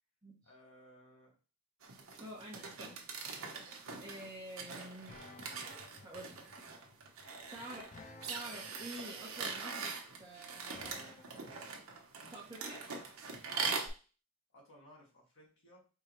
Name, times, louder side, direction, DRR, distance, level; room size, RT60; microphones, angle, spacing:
voice 1, 0.4-1.4 7.6-7.8 14.5-15.9, equal, 60° left, -2 dB, 1.6 m, -60 dB
sound 1, 1.8-13.9, right 5 dB, 70° right, 0.9 m, -42 dB
voice 2, 2.2-3.0 3.5-5.2 6.0-6.4 7.2-8.0 8.3-11.0 12.3-12.8, right 1 dB, 20° right, -5 dB, 0.8 m, -49 dB
sound 2, 3.5-11.7, left 2 dB, 35° left, 0.5 m, -57 dB
4.6 x 2.9 x 3.0 m, 0.35 s
head